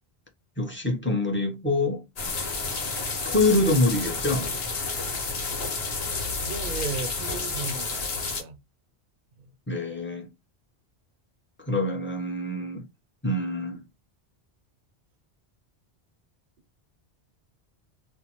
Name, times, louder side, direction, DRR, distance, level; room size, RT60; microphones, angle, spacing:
voice 1, 0.6-2.0 3.2-4.6 9.7-10.3 11.7-12.8 13.2-13.8, left 2 dB, 15° left, 0.4 m, -25 dB
sound 1, 2.2-8.4, left 4 dB, 70° left, 1.0 m, -30 dB
voice 2, 6.4-8.6 9.4-9.5, right 4 dB, 55° right, 0.6 m, -35 dB
2.6 x 2.1 x 2.9 m
omnidirectional pair, 1.1 m